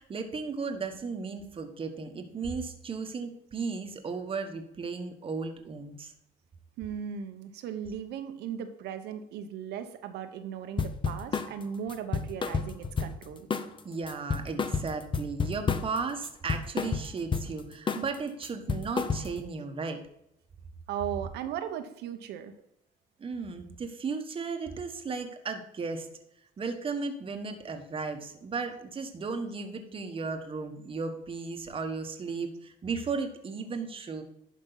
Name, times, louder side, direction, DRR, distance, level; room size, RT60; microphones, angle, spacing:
voice 1, 0.0-6.1 13.8-20.0 23.2-26.1 26.6-34.2, right 4 dB, 30° right, 5 dB, 1.3 m, -35 dB
voice 2, 6.8-13.5 20.9-22.5, right 8 dB, 80° right, 8 dB, 1.0 m, -37 dB
sound 1, 10.8-11.5 11.9-13.2 13.5-13.8 14.1-16.0 16.2-17.5 17.9-18.1 18.4-19.5, left 5 dB, 30° left, 0.7 m, -30 dB
11.0 x 5.3 x 4.0 m, 0.80 s
cardioid pair, 110°, 17 cm